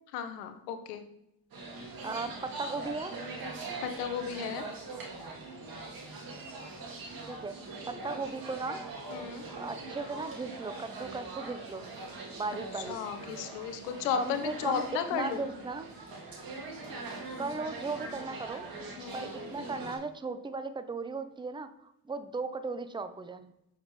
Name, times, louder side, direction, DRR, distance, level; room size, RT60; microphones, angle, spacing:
voice 1, 0.1-1.0 3.8-4.6 9.1-9.5 12.7-15.4 19.0-19.3, left 7 dB, 80° left, 9 dB, 1.0 m, -34 dB
sound 1, 1.5-20.0, right 3 dB, 45° right, 2.3 m, -42 dB
voice 2, 2.0-3.1 7.3-7.6 7.9-8.8 9.6-11.9 12.3-13.0 14.2-15.9 17.4-18.7 19.1-21.7 22.1-23.5, right 3 dB, 10° right, 10 dB, 0.7 m, -36 dB
7.2 x 6.4 x 3.2 m, 0.83 s
hypercardioid pair, 60°, 47 cm